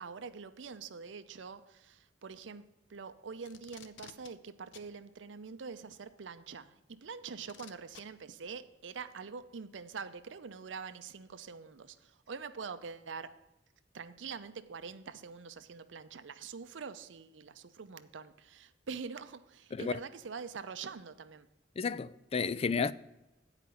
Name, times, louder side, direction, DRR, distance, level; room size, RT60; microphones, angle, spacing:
voice 1, 0.0-13.4 13.9-21.5, right 5 dB, 85° right, 0.6 m, -45 dB
Packing tape duct tape, 3.4-4.3 4.7-4.9 6.2-6.3 7.4-8.0 9.1-9.2, left 7 dB, 85° left, 0.7 m, -52 dB
voice 2, 21.8-22.9, left 5 dB, 35° left, 0.3 m, -32 dB
9.3 x 4.9 x 6.9 m
head